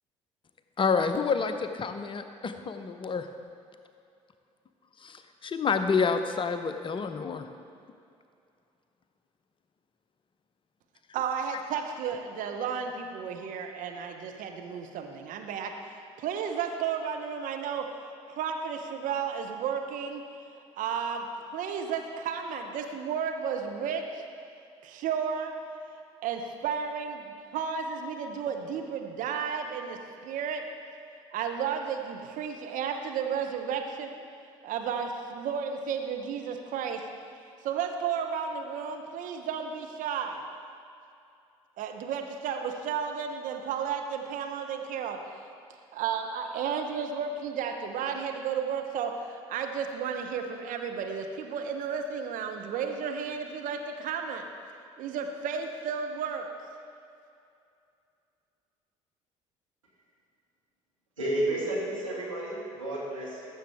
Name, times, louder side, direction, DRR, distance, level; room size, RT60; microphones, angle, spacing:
voice 1, 0.8-3.3 5.0-7.5, left 5 dB, 30° left, 8 dB, 0.7 m, -28 dB
voice 2, 11.1-17.9 18.3-20.2 20.5-21.3 21.5-24.2 24.8-25.5 26.2-30.6 31.3-34.1 34.6-37.0 37.6-40.4 41.8-45.2 45.9-54.5 55.0-56.5, right 7 dB, 55° right, 4 dB, 0.9 m, -33 dB
voice 3, 61.2-63.6, right 1 dB, 85° right, -7 dB, 2.1 m, -31 dB
15.0 x 6.9 x 3.5 m, 2.5 s
figure-of-eight pair, 55°, 16 cm